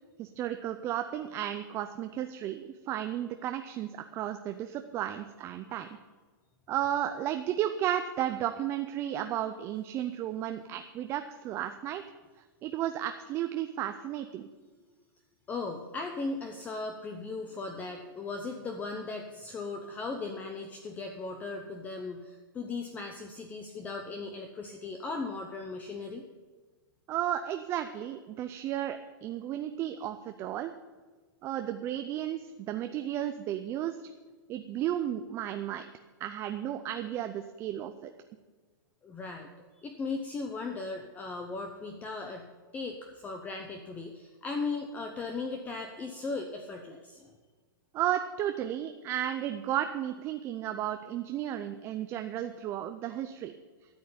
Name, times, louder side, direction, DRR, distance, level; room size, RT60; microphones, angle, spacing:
voice 1, 0.2-5.9 6.7-12.0 12.6-14.5 27.1-30.7 31.4-34.0 34.5-35.9 36.2-38.1 47.9-53.5, right 11 dB, 20° right, 7 dB, 0.5 m, -33 dB
voice 2, 15.5-26.2 39.0-39.5 39.8-42.5 42.7-47.3, left 3 dB, 15° left, 4 dB, 0.8 m, -37 dB
12.5 x 6.5 x 8.6 m, 1.4 s
hypercardioid pair, 155°, 12 cm